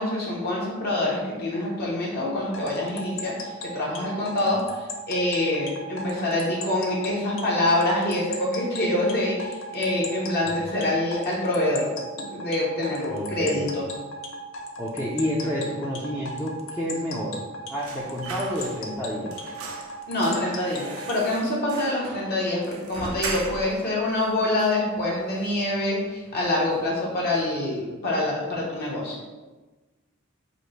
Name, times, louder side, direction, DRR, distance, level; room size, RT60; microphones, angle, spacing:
voice 1, 0.0-11.9 12.3-13.9 20.1-29.2, left 1 dB, 45° left, -5 dB, 0.9 m, -26 dB
sound 1, 2.5-21.3, left 1 dB, 65° left, 0.6 m, -36 dB
voice 2, 13.1-13.7 14.8-17.4 17.7-19.4, equal, 10° left, -7 dB, 0.5 m, -29 dB
sound 2, 17.8-19.0 19.3-23.8 24.2-24.3 24.6-25.4 25.7-25.9 26.2-26.9 27.2-27.4, right 4 dB, 85° right, 0.6 m, -39 dB
5.2 x 2.1 x 4.5 m, 1.2 s
head